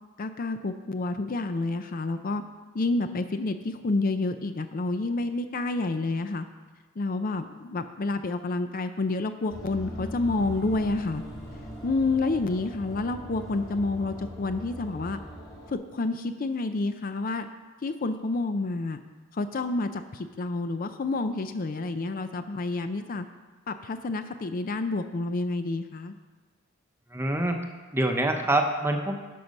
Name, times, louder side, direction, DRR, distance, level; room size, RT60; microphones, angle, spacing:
voice 1, 0.2-2.4 2.7-6.5 7.0-11.2 11.8-15.2 15.7-17.5 17.8-19.0 19.3-23.2 23.7-26.1, left 3 dB, 45° left, 9 dB, 0.5 m, -29 dB
sound 1, 9.5-15.7, equal, 15° left, 2.1 m, -40 dB
voice 2, 27.1-27.6 27.9-29.2, right 1 dB, 10° right, 4 dB, 0.8 m, -25 dB
11.5 x 6.0 x 5.3 m, 1.3 s
head